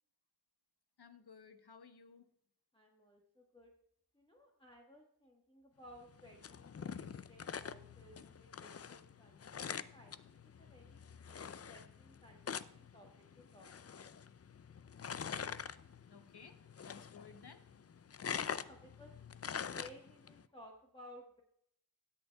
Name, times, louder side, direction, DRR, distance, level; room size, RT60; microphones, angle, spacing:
voice 1, 1.0-2.3 16.1-16.6 16.8-17.7, left 5 dB, 70° left, 8 dB, 0.9 m, -57 dB
voice 2, 2.7-3.7 4.1-14.1 18.4-19.1 19.6-21.4, equal, 15° left, -1 dB, 1.3 m, -59 dB
sound 1, 6.0-20.4, left 7 dB, 40° left, 0.4 m, -45 dB
19.0 x 6.7 x 2.3 m, 0.73 s
wide cardioid pair, 45°, 40 cm